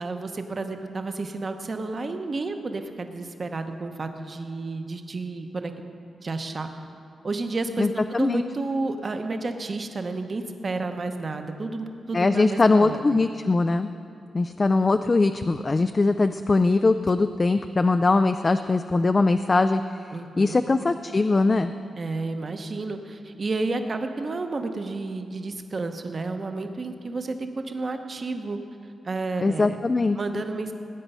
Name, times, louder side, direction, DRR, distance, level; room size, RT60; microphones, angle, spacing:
voice 1, 0.0-5.7 6.2-6.7 7.2-13.0 20.1-20.6 22.0-28.6 29.0-29.8 30.2-30.7, right 3 dB, 30° right, 7 dB, 0.8 m, -31 dB
voice 2, 7.8-8.4 12.1-13.9 14.3-21.7 29.4-30.4, left 3 dB, 25° left, 9 dB, 0.3 m, -21 dB
19.0 x 9.2 x 5.5 m, 2.5 s
wide cardioid pair, 165°, 0 cm